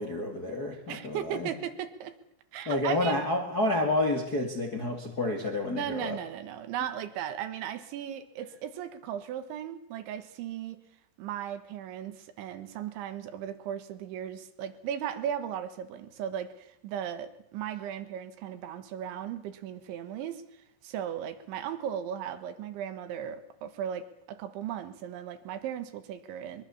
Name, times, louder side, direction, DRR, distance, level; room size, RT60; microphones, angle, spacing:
voice 1, 0.0-1.5 2.6-6.2, left 2 dB, 35° left, 1.5 m, -29 dB
voice 2, 0.9-2.2 2.5-3.2 5.7-10.8 11.2-26.6, right 9 dB, 75° right, 3.7 m, -37 dB
23.5 x 22.5 x 7.1 m
omnidirectional pair, 5.6 m